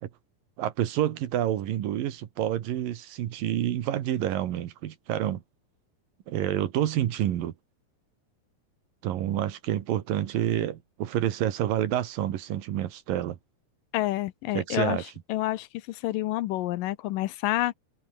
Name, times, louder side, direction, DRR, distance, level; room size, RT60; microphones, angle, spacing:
voice 1, 0.6-5.4 6.3-7.5 9.0-13.4 14.5-15.0, right 11 dB, 75° right, 3.2 m, -28 dB
voice 2, 13.9-15.0 15.3-17.8, left 16 dB, 75° left, 2.4 m, -28 dB
omnidirectional pair, 4.1 m